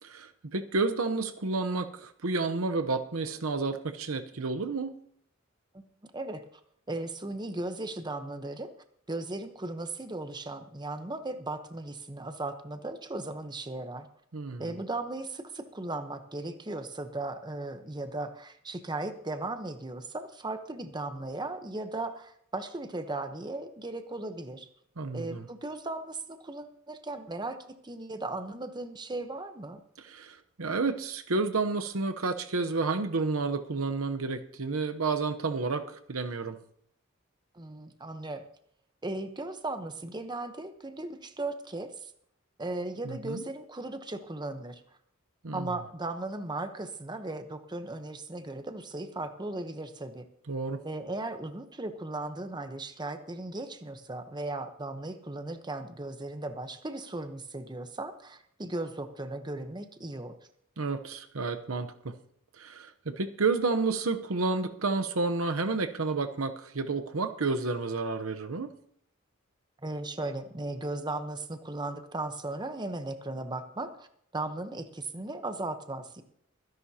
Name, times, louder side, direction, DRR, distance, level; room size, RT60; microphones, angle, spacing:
voice 1, 0.0-4.9 14.3-14.7 25.0-25.5 30.0-36.6 43.0-43.4 45.4-45.7 50.5-50.8 60.8-62.2 62.6-68.7, right 3 dB, 85° right, 8 dB, 0.9 m, -30 dB
voice 2, 6.9-8.7 9.1-14.1 14.6-24.7 25.1-27.6 27.8-29.8 37.5-38.4 39.0-42.1 42.6-44.8 45.5-50.3 50.8-60.3 69.8-74.1 74.3-76.2, right 2 dB, 20° right, 8 dB, 1.0 m, -37 dB
24.0 x 11.0 x 2.9 m, 0.68 s
head